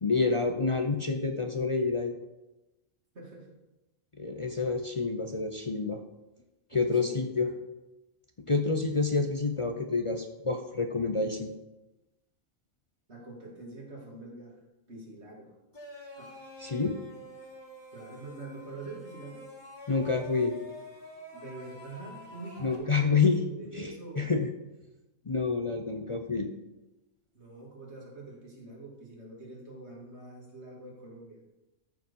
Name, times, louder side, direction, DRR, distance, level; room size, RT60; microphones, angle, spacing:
voice 1, 0.0-2.1 4.2-6.0 6.7-7.5 8.4-11.5 16.6-17.0 19.9-20.6 22.6-23.4 23.7-24.5 25.3-26.5, left 4 dB, 40° left, 4 dB, 0.5 m, -28 dB
voice 2, 3.1-3.6 6.7-7.5 13.1-14.6 14.9-15.5 16.2-16.4 17.9-19.4 21.3-23.2 23.4-24.3 27.3-31.4, right 2 dB, 50° right, -3 dB, 2.7 m, -45 dB
sound 1, 15.7-22.8, left 1 dB, 20° left, 1.8 m, -47 dB
13.5 x 4.7 x 5.4 m, 1.0 s
omnidirectional pair, 1.4 m